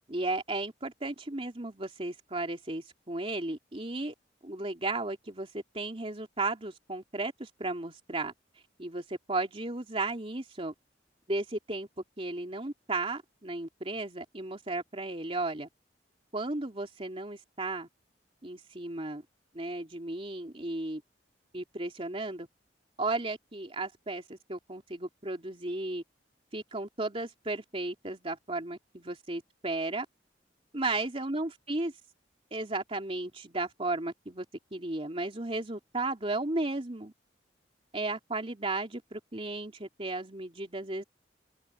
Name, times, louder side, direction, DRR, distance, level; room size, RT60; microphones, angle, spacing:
voice 1, 0.1-4.1 4.4-8.3 8.8-10.7 11.3-11.9 12.2-15.7 16.3-17.9 18.4-19.2 19.5-21.0 21.5-22.5 23.0-26.0 26.5-30.1 30.7-31.9 32.5-34.4 34.7-37.1 37.9-41.0, right 2 dB, 30° right, 3.1 m, -34 dB
open air
head